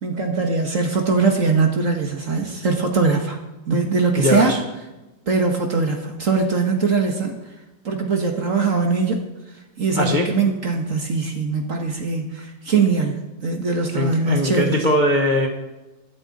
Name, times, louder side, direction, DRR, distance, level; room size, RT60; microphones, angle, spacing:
voice 1, 0.0-3.4 3.7-4.5 5.3-7.4 7.8-9.3 9.8-14.8, right 4 dB, 45° right, 3 dB, 1.5 m, -21 dB
voice 2, 4.2-4.6 10.0-10.3 13.9-15.5, left 1 dB, 30° left, 1 dB, 0.9 m, -20 dB
22.0 x 7.6 x 4.1 m, 1.0 s
omnidirectional pair, 2.3 m